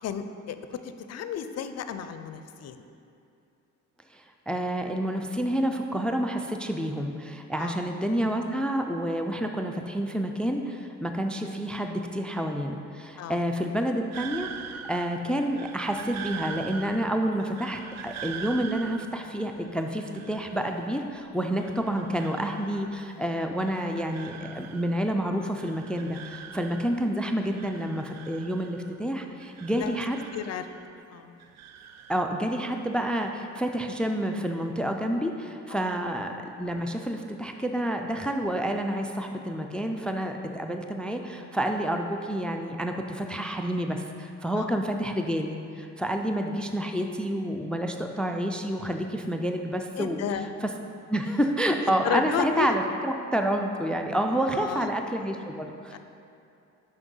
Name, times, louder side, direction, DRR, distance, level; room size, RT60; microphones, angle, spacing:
voice 1, 0.0-2.8 7.6-7.8 13.2-13.4 22.5-22.8 29.7-30.0 30.3-30.7 31.1-31.4 35.7-35.9 44.5-44.7 50.0-50.5 51.9-52.7 54.4-54.9 55.9-56.0, left 8 dB, 60° left, 10 dB, 0.5 m, -33 dB
voice 2, 4.1-30.2 32.1-50.2 51.1-56.0, right 1 dB, 5° left, 4 dB, 0.4 m, -29 dB
sound 1, 14.1-21.1 21.4-23.1 23.4-25.2 25.4-27.1 27.4-29.1 29.4-31.1 31.4-32.2, right 7 dB, 60° right, 0.5 m, -43 dB
5.9 x 5.5 x 5.4 m, 2.7 s
cardioid pair, 90°, 30 cm